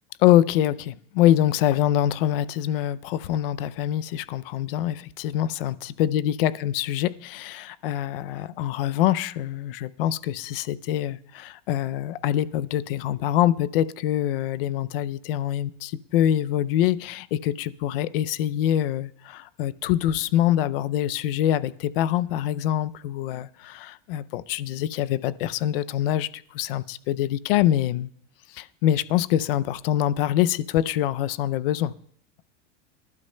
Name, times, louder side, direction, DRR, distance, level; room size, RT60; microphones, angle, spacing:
voice 1, 0.2-28.1 28.5-31.9, left 12 dB, 50° left, 0.5 m, -24 dB
24.0 x 12.0 x 2.2 m
supercardioid pair, 165°, 38 cm